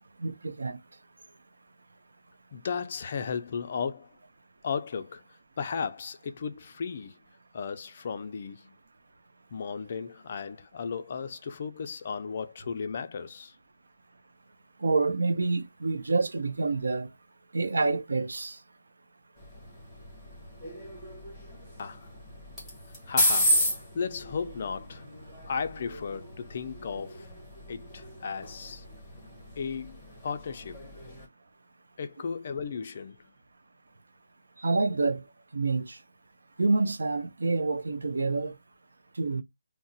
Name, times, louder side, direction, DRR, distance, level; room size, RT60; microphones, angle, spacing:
voice 1, 0.2-0.8 14.8-17.1 17.5-18.6 34.6-35.2 35.5-36.0 36.6-38.6 39.2-39.4, right 3 dB, 75° right, 0.6 m, -27 dB
voice 2, 2.5-4.1 4.6-5.2 5.6-7.2 7.5-8.7 9.5-13.5 21.8-22.1 23.1-23.6 23.9-25.0 25.5-27.3 27.7-28.8 29.6-30.8 32.0-33.2, left 6 dB, 35° left, 0.3 m, -35 dB
sound 1, 19.4-31.3, left 1 dB, ahead, 0.8 m, -33 dB
2.4 x 2.0 x 3.8 m
hypercardioid pair, 175°, 0 cm